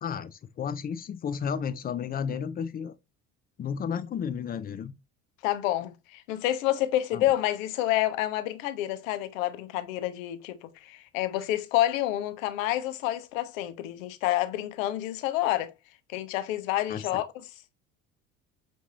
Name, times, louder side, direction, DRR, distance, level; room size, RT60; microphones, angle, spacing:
voice 1, 0.0-2.9 3.6-4.9 7.1-7.2 16.9-17.2, left 7 dB, 20° left, 0.4 m, -33 dB
voice 2, 5.4-15.7 16.1-17.4, left 14 dB, 65° left, 0.7 m, -28 dB
5.7 x 2.6 x 2.9 m
figure-of-eight pair, 60°, 43 cm